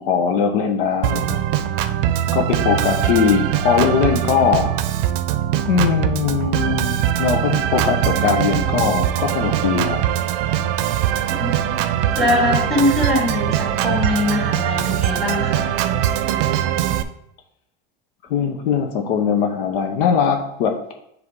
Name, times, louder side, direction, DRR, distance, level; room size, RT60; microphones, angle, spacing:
voice 1, 0.0-1.4 2.3-4.7 5.7-10.0 18.3-20.9, left 6 dB, 70° left, 4 dB, 0.9 m, -20 dB
Organ, 1.0-17.0, right 11 dB, 70° right, 0.6 m, -21 dB
voice 2, 11.4-11.8 12.2-15.7, left 2 dB, ahead, -3 dB, 1.9 m, -22 dB
7.3 x 3.4 x 4.7 m, 0.76 s
supercardioid pair, 155°, 29 cm